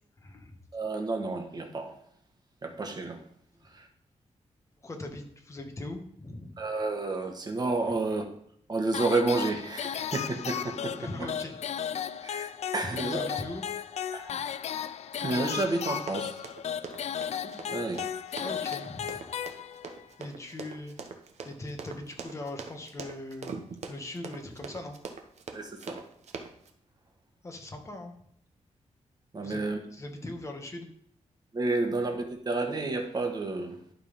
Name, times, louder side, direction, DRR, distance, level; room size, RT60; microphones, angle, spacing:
voice 1, 0.2-0.6 4.8-6.6 11.0-11.5 12.8-13.6 18.4-19.2 20.2-21.0 21.4-23.5 23.9-25.0 27.4-28.1 29.4-30.9, left 2 dB, 25° left, 3 dB, 1.5 m, -40 dB
voice 2, 0.7-2.0 2.6-3.2 3.7-3.9 6.6-8.2 8.7-10.9 12.2-13.4 14.1-14.4 15.2-16.4 17.4-18.1 25.5-26.0 29.3-29.8 31.5-33.8, right 3 dB, 35° right, 3 dB, 1.6 m, -30 dB
sound 1, 8.9-20.1, left 9 dB, 65° left, 0.4 m, -35 dB
Run, 16.0-26.7, right 5 dB, 65° right, 1.0 m, -42 dB
11.5 x 4.0 x 5.3 m, 0.68 s
wide cardioid pair, 120°, 12 cm